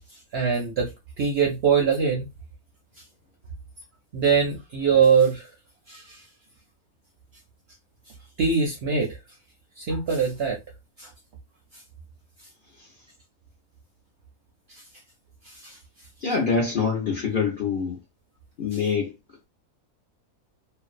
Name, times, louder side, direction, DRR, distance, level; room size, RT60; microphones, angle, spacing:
voice 1, 0.3-0.9 1.2-2.3 4.1-5.5 5.9-6.2 8.4-9.1 9.8-10.6 11.0-11.1 14.7-14.8 15.5-15.8 18.7-18.8, right 6 dB, 65° right, 0.6 m, -22 dB
voice 2, 16.2-18.0 18.6-19.1, left 5 dB, 55° left, 0.6 m, -25 dB
2.6 x 2.1 x 2.4 m
omnidirectional pair, 1.5 m